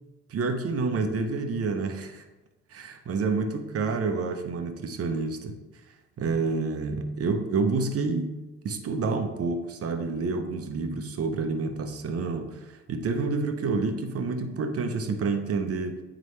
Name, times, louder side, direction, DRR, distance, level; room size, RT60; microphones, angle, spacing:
voice 1, 0.3-2.2 2.7-5.5 6.2-16.0, right 4 dB, 50° right, 6 dB, 0.8 m, -28 dB
9.2 x 3.7 x 3.2 m, 1.1 s
cardioid pair, 90°, 30 cm